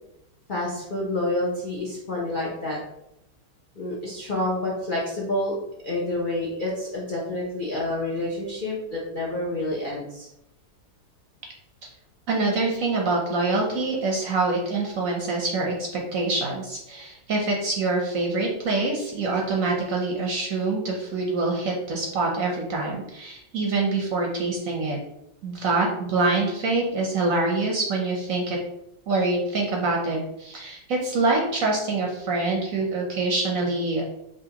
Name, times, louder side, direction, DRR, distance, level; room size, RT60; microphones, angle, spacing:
voice 1, 0.5-2.8 3.8-5.6 5.8-10.3, left 1 dB, 50° left, -4 dB, 0.6 m, -28 dB
voice 2, 12.3-25.0 25.4-28.6 29.1-34.2, right 3 dB, 60° right, 0 dB, 0.9 m, -25 dB
5.0 x 3.0 x 2.8 m, 0.82 s
omnidirectional pair, 1.9 m